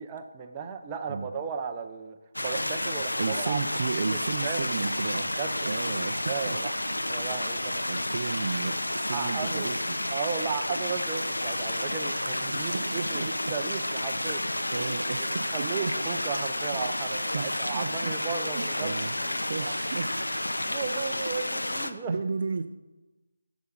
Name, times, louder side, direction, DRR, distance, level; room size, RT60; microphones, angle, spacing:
voice 1, 0.0-3.6 4.0-4.7 5.4-6.0 6.3-6.7 7.0-7.8 9.1-9.8 10.1-14.4 14.7-14.9 15.3-18.9 19.2-19.7 20.7-22.1, right 6 dB, 20° right, 4 dB, 0.8 m, -35 dB
sound 1, 2.3-21.9, left 1 dB, 85° left, 0.9 m, -31 dB
voice 2, 3.2-5.3 5.6-6.6 7.9-10.0 12.5-13.3 14.7-15.9 17.3-19.2 19.5-20.1 22.1-22.7, right 4 dB, 45° right, 8 dB, 0.5 m, -33 dB
8.1 x 7.2 x 7.9 m, 1.1 s
figure-of-eight pair, 155°, 0 cm